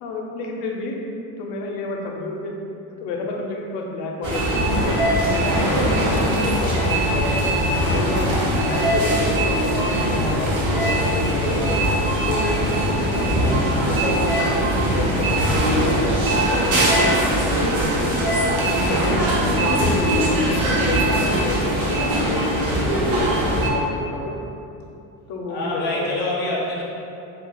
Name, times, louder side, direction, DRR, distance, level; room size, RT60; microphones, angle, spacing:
voice 1, 0.0-1.0 1.4-2.5 3.0-4.9 5.3-7.5 7.9-8.3 8.6-11.6 12.3-14.5 14.9-16.9 17.2-19.2 19.6-22.4 22.9-24.4 25.3-26.2, left 2 dB, 85° left, 0 dB, 0.6 m, -30 dB
sound 1, 4.2-23.7, right 1 dB, 55° right, 0.8 m, -21 dB
voice 2, 12.3-12.7 25.5-26.8, left 2 dB, 25° left, -5 dB, 0.4 m, -27 dB
2.7 x 2.3 x 3.7 m, 2.7 s
cardioid pair, 160°, 42 cm